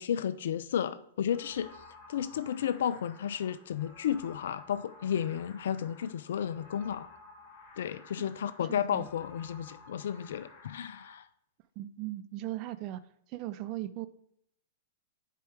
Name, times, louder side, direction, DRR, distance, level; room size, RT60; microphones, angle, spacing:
voice 1, 0.0-1.7 2.1-7.1 7.8-11.3, left 9 dB, 70° left, 14 dB, 0.3 m, -33 dB
sound 1, 1.3-11.1, left 3 dB, 40° left, 2.4 m, -54 dB
voice 2, 8.7-9.1 11.8-13.0 13.3-14.1, right 15 dB, 45° right, 14 dB, 0.4 m, -38 dB
7.0 x 4.6 x 4.6 m, 0.72 s
hypercardioid pair, 110°, 0 cm